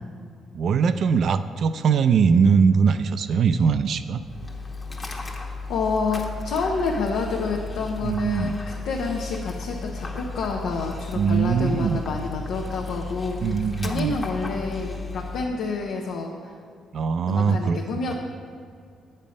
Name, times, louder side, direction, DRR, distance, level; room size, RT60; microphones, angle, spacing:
voice 1, 0.5-4.2 8.0-8.5 11.2-12.0 13.4-14.2 16.9-17.8 18.1-18.2, right 6 dB, 60° right, 11 dB, 0.3 m, -21 dB
Dog, 4.2-15.5, left 3 dB, 25° left, 1.0 m, -34 dB
voice 2, 5.0-16.5 17.3-18.1, left 4 dB, 80° left, 0 dB, 0.7 m, -29 dB
8.5 x 5.4 x 5.2 m, 2.2 s
cardioid pair, 90°, 0 cm